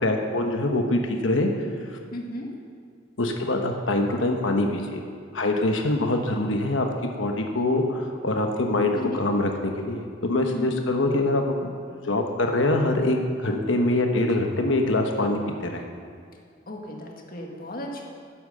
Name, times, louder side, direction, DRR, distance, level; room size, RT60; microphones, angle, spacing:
voice 1, 0.0-1.5 1.9-2.0 3.2-5.0 5.3-11.7 12.0-15.8, left 2 dB, 85° left, 3 dB, 1.1 m, -24 dB
voice 2, 2.1-2.5 8.9-9.2 10.4-10.7 16.7-18.0, equal, 50° left, 0 dB, 1.8 m, -35 dB
11.5 x 9.2 x 6.7 m, 2.2 s
head